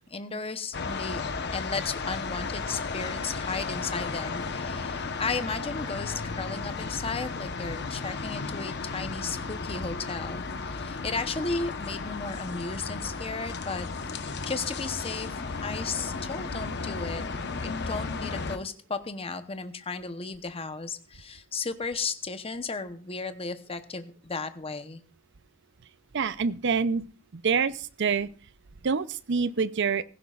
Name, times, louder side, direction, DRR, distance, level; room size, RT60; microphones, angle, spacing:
voice 1, 0.1-1.2 1.5-13.9 14.2-17.2 17.6-25.0, left 4 dB, 30° left, 10 dB, 0.9 m, -34 dB
sound 1, 0.7-18.6, left 4 dB, 60° left, 1.0 m, -34 dB
voice 2, 26.1-27.0 27.4-27.7 28.0-28.3 28.8-30.0, right 5 dB, 60° right, 15 dB, 0.6 m, -26 dB
16.5 x 15.5 x 2.4 m, 0.38 s
head